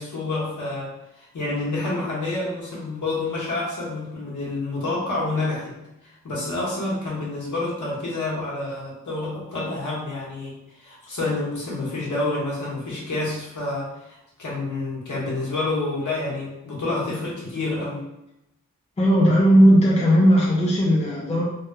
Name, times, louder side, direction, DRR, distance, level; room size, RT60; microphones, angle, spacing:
voice 1, 0.0-5.7 6.0-18.0, left 2 dB, 60° left, -5 dB, 1.2 m, -28 dB
voice 2, 19.0-21.4, equal, 20° left, -3 dB, 0.5 m, -16 dB
3.2 x 2.8 x 2.2 m, 0.89 s
wide cardioid pair, 115°, 34 cm